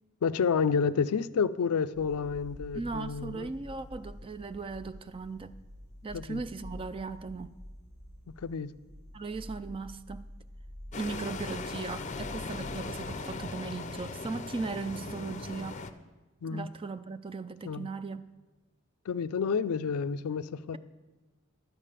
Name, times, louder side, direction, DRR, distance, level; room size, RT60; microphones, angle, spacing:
voice 1, 0.2-3.5 6.1-6.4 8.3-8.7 16.4-16.7 17.6-17.9 19.1-20.8, left 6 dB, 85° left, 0.4 m, -30 dB
sound 1, 1.9-13.6, equal, 75° right, 3.5 m, -48 dB
voice 2, 2.7-5.5 6.0-7.6 9.1-10.3 11.0-15.9 16.5-18.2, right 4 dB, 25° right, 0.4 m, -38 dB
sound 2, 10.9-15.9, left 3 dB, 35° left, 0.6 m, -39 dB
11.5 x 7.4 x 6.6 m
head